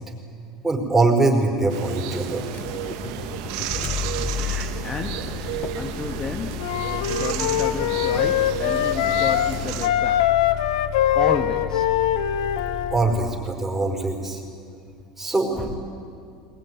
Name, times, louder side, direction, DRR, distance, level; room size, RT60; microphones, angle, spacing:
voice 1, 0.6-2.5 4.4-4.7 12.9-14.4 15.2-15.7, right 2 dB, 10° right, 1 dB, 5.0 m, -23 dB
sound 1, 1.7-9.9, right 10 dB, 75° right, 1.5 m, -32 dB
Motor vehicle (road), 2.4-13.6, left 8 dB, 45° left, 0.9 m, -33 dB
voice 2, 4.8-6.8 7.1-10.4 11.1-11.9 15.5-15.7, left 4 dB, 25° left, 4 dB, 1.5 m, -32 dB
Wind instrument woodwind instrument, 6.6-9.5 9.8-13.0, left 11 dB, 85° left, 1.0 m, -22 dB
21.5 x 21.0 x 9.7 m, 2.5 s
supercardioid pair, 100°, 3 cm